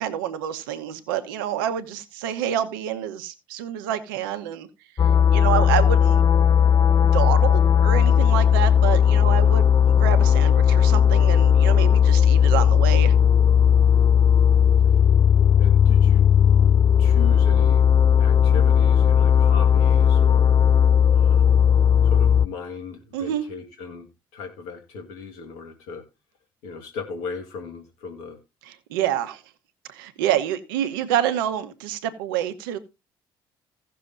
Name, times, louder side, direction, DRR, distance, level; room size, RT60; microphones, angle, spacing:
voice 1, 0.0-4.7 5.0-6.2 7.0-13.1 23.1-23.4 28.6-29.4 29.9-32.8, right 10 dB, 85° right, 10 dB, 1.0 m, -27 dB
sound 1, 5.0-22.5, left 8 dB, 35° left, 0.5 m, -17 dB
voice 2, 15.6-16.2 17.0-20.6 21.1-21.6 22.0-26.0 26.6-28.4, left 4 dB, 75° left, 4 dB, 1.7 m, -37 dB
17.0 x 6.7 x 2.6 m, 0.25 s
hypercardioid pair, 55°, 11 cm